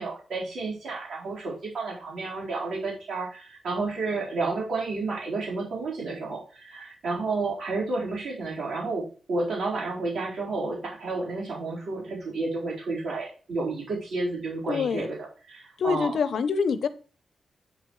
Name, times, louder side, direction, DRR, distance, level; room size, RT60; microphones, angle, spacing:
voice 1, 0.0-15.2 15.5-16.2, right 3 dB, 70° right, -4 dB, 4.3 m, -31 dB
voice 2, 14.7-15.1 15.8-16.9, left 5 dB, 70° left, 13 dB, 0.8 m, -25 dB
8.9 x 7.1 x 3.2 m, 0.38 s
wide cardioid pair, 125°, 0 cm